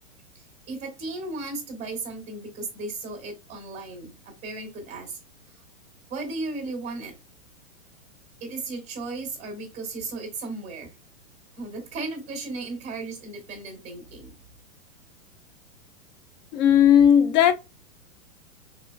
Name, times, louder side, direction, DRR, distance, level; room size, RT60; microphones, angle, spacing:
voice 1, 0.3-5.2 6.1-7.1 8.4-10.9 11.5-14.3, right 3 dB, 15° right, 1.2 m, -35 dB
voice 2, 16.5-17.5, left 9 dB, 35° left, 0.4 m, -16 dB
3.0 x 3.0 x 2.2 m
hypercardioid pair, 135°, 42 cm